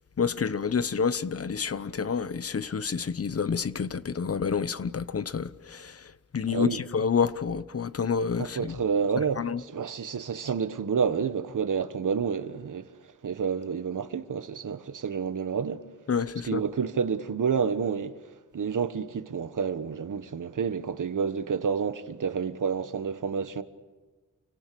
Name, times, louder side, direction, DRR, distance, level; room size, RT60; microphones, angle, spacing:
voice 1, 0.2-6.0 6.3-8.8 9.4-9.6 16.1-16.6, left 6 dB, 50° left, 0.9 m, -28 dB
voice 2, 6.5-6.8 8.4-12.9 13.2-15.8 16.4-18.1 18.5-23.6, right 6 dB, 85° right, 1.4 m, -29 dB
29.0 x 24.0 x 6.9 m
wide cardioid pair, 145°, 31 cm